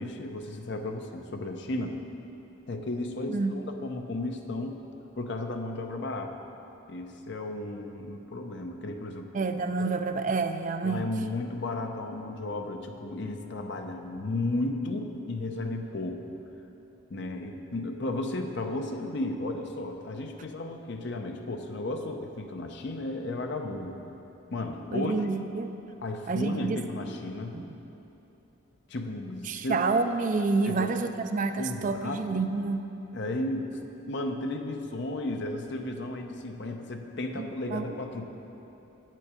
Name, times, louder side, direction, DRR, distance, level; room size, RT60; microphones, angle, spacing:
voice 1, 0.0-2.0 2.7-4.8 5.2-6.4 6.9-9.3 10.8-16.2 17.1-24.0 24.5-25.1 26.0-27.6 28.9-29.8 30.6-30.9 31.6-32.4 33.1-33.7 34.1-38.2, left 2 dB, 55° left, 4 dB, 0.6 m, -34 dB
voice 2, 9.3-11.1 24.9-25.7 26.3-26.8 27.5-27.7 29.5-32.9 37.4-38.0, right 4 dB, 40° right, 8 dB, 0.4 m, -28 dB
8.3 x 7.6 x 4.9 m, 3.0 s
head